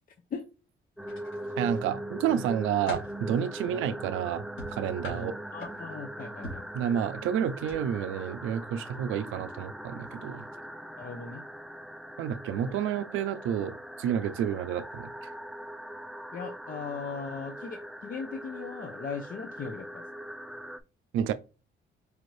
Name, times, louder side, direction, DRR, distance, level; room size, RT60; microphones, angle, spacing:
sound 1, 1.0-1.8 2.3-3.2 4.6-6.0 6.4-6.7 7.6-7.8 8.2-8.3, equal, 85° left, 2.2 m, -41 dB
sound 2, 1.0-20.8, right 1 dB, ahead, 0.3 m, -41 dB
voice 1, 1.6-4.4 4.7-5.3 6.7-10.4 12.2-15.1 21.1-21.3, right 9 dB, 90° right, 0.4 m, -30 dB
voice 2, 5.1-6.7 11.0-11.4 12.7-12.8 16.3-20.0, left 5 dB, 45° left, 0.6 m, -39 dB
4.8 x 2.6 x 3.1 m
cardioid pair, 90°, 20 cm